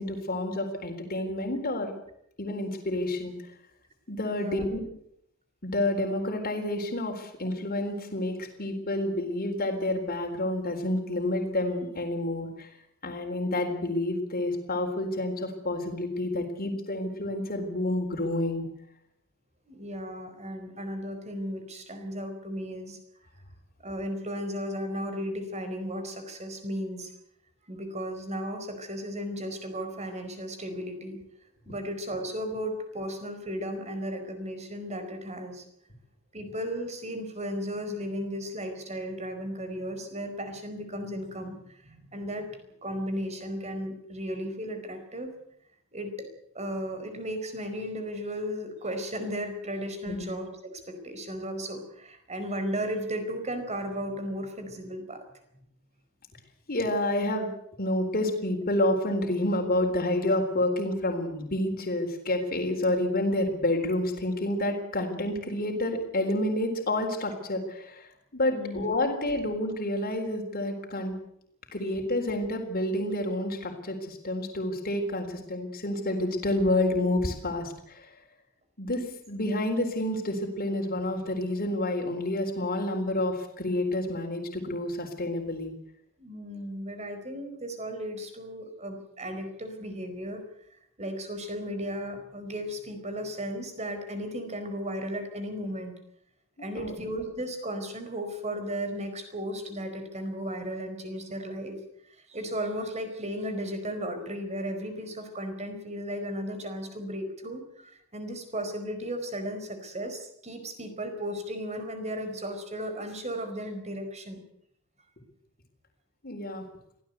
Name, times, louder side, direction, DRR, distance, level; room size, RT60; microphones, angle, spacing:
voice 1, 0.0-1.9 2.4-3.4 4.1-4.8 5.6-12.7 13.0-18.6 50.0-50.2 56.7-57.5 57.8-71.1 71.7-78.1 78.8-85.7 96.7-96.9 116.2-116.6, left 1 dB, 45° left, 2 dB, 4.0 m, -29 dB
voice 2, 4.3-4.6 19.7-23.0 23.8-27.1 27.7-31.2 31.6-35.6 36.3-42.5 42.8-45.3 45.9-46.3 46.5-50.5 50.9-55.2 68.5-68.8 86.2-90.4 91.0-95.9 96.6-101.8 102.1-114.4, equal, 30° right, 7 dB, 4.7 m, -35 dB
24.0 x 16.5 x 8.2 m, 0.74 s
head